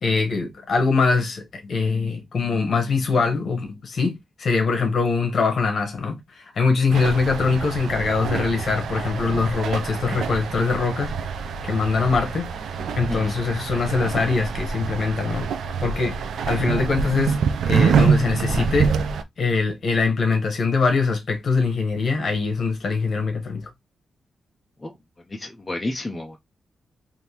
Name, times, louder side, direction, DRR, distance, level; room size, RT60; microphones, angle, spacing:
voice 1, 0.0-11.2 11.6-12.5 13.0-15.5 15.8-16.2 16.5-19.0 19.4-23.7, left 4 dB, 45° left, 1.0 m, -23 dB
sound 1, 6.9-19.2, right 6 dB, 85° right, 0.4 m, -25 dB
voice 2, 25.3-26.4, left 2 dB, 15° left, 0.4 m, -30 dB
3.4 x 2.6 x 2.8 m
wide cardioid pair, 175°, 0 cm